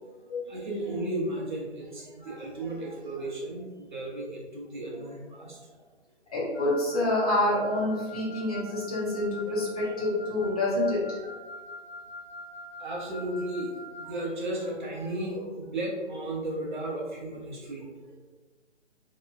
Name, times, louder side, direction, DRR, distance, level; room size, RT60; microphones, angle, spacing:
voice 1, 0.4-5.8 9.8-9.9 11.2-11.3 12.8-13.7 14.0-18.2, right 1 dB, 45° right, -3 dB, 0.7 m, -35 dB
voice 2, 6.3-11.2, left 1 dB, 35° left, -6 dB, 0.8 m, -27 dB
Wind instrument woodwind instrument, 6.5-14.3, left 1 dB, 85° left, 0.9 m, -44 dB
2.9 x 2.1 x 2.4 m, 1.3 s
figure-of-eight pair, 145°, 35 cm